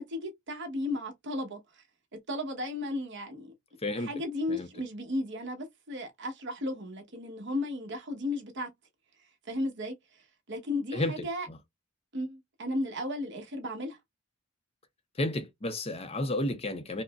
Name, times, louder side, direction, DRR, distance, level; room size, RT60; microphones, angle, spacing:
voice 1, 0.0-1.8 2.3-3.5 4.0-8.7 9.5-9.9 10.5-11.5 12.1-14.0, left 1 dB, 55° right, 1.1 m, -34 dB
voice 2, 10.9-11.6 15.2-17.0, left 1 dB, 30° left, 0.6 m, -32 dB
4.9 x 2.1 x 2.3 m
head